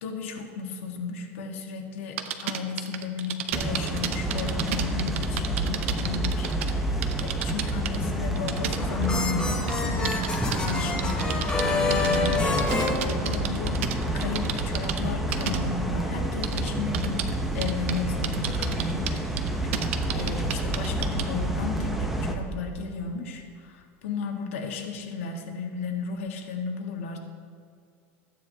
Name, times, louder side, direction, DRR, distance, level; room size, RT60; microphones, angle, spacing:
voice 1, 0.0-11.4 11.7-13.8 14.1-17.3 17.5-19.2 20.1-27.2, left 5 dB, 90° left, 2 dB, 1.6 m, -34 dB
sound 1, 2.2-6.7 7.0-8.0 8.4-9.2 9.7-15.0 15.3-15.6 16.4-17.3 17.6-18.0 18.2-21.3, right 11 dB, 85° right, 0.7 m, -32 dB
sound 2, 3.5-22.3, right 1 dB, 5° right, 0.7 m, -29 dB
sound 3, 8.5-13.8, left 3 dB, 15° left, 1.1 m, -28 dB
14.5 x 9.2 x 2.8 m, 2.3 s
supercardioid pair, 160°, 7 cm